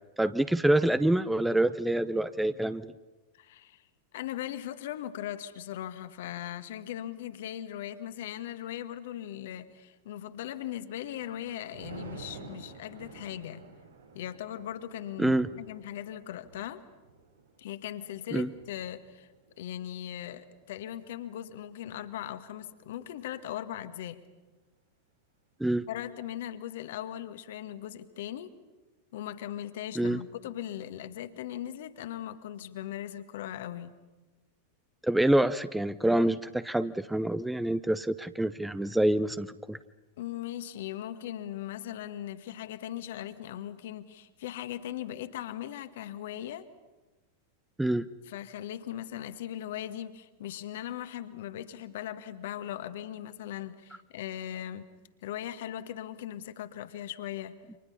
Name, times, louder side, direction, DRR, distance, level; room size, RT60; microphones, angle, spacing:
voice 1, 0.2-2.9 15.2-15.5 18.3-18.5 25.6-25.9 30.0-30.2 35.0-39.8 47.8-48.1, right 1 dB, 5° right, 14 dB, 0.7 m, -26 dB
voice 2, 3.3-3.8 4.1-13.6 14.1-16.8 17.6-19.3 19.6-24.2 25.9-28.5 29.1-33.9 40.2-46.7 48.3-54.9 55.2-57.5, left 11 dB, 55° left, 10 dB, 1.6 m, -39 dB
Thunder, 10.6-22.1 22.6-22.9, right 4 dB, 70° right, 3.4 m, -51 dB
29.5 x 26.0 x 5.7 m, 1.2 s
figure-of-eight pair, 90°, 0 cm